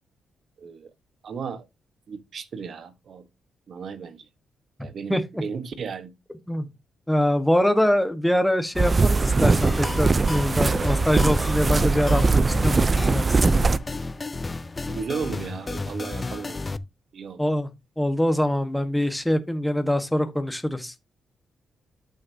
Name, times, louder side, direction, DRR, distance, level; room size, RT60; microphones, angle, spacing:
voice 1, 0.6-0.9 1.2-1.7 2.1-3.2 3.7-4.2 4.8-6.1 14.9-16.6 17.1-17.4, right 6 dB, 60° right, 1.3 m, -34 dB
voice 2, 5.1-5.4 6.5-6.7 7.1-13.6 17.4-17.7 18.0-20.9, left 1 dB, 5° left, 1.4 m, -24 dB
sound 1, 8.8-13.8, right 3 dB, 35° right, 0.6 m, -21 dB
sound 2, 9.6-16.8, left 3 dB, 25° left, 0.6 m, -33 dB
11.5 x 6.6 x 2.8 m
cardioid pair, 75°, 0 cm